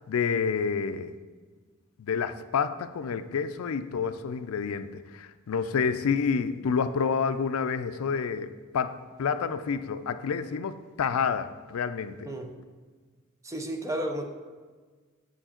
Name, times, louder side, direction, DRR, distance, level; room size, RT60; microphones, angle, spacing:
voice 1, 0.1-1.1 2.0-12.3, left 6 dB, 80° left, 12 dB, 0.4 m, -29 dB
voice 2, 13.4-14.2, right 1 dB, 15° right, 3 dB, 0.6 m, -32 dB
7.1 x 4.5 x 4.4 m, 1.4 s
head